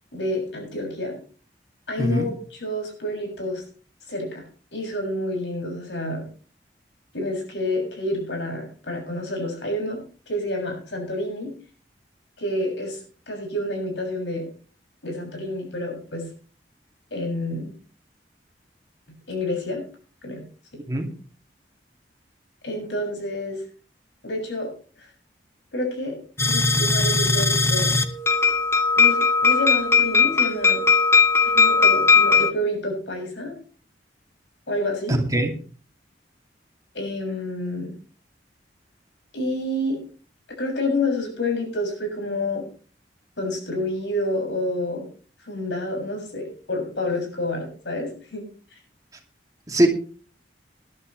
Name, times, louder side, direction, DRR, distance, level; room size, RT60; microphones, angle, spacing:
voice 1, 0.1-1.2 1.9-3.6 4.1-4.4 4.7-6.3 7.1-11.5 12.4-13.0 13.3-14.5 15.0-16.3 17.1-17.7 19.3-19.8 20.2-20.4 22.6-23.6 24.2-24.7 25.0-25.1 25.7-26.2 26.4-27.9 28.9-30.8 31.4-33.6 34.7-35.2 36.9-37.9 39.3-40.0 40.6-42.6 43.4-45.0 45.4-48.5 48.7-48.8, left 1 dB, 85° left, 1 dB, 6.8 m, -28 dB
voice 2, 2.0-2.3 20.9-21.1 35.1-35.5 49.7-49.9, right 1 dB, 20° right, 2 dB, 2.6 m, -21 dB
sound 1, 26.4-32.5, left 5 dB, 15° left, 1.0 m, -18 dB
20.0 x 11.5 x 3.3 m, 0.40 s
head